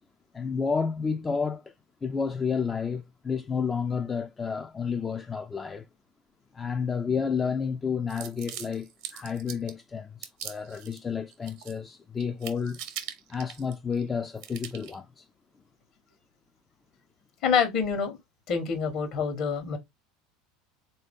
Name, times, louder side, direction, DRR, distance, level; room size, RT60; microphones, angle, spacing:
voice 1, 0.3-1.7 2.0-5.9 6.5-12.8 13.3-15.3, left 6 dB, 20° left, 0.4 m, -30 dB
sound 1, 8.1-9.8 10.2-11.0 11.3-11.9 12.2-14.0 14.4-15.0, right 10 dB, 65° right, 0.8 m, -41 dB
voice 2, 17.4-18.2 18.5-19.8, left 6 dB, 55° left, 1.2 m, -26 dB
3.6 x 2.7 x 3.5 m
hypercardioid pair, 85°, 0 cm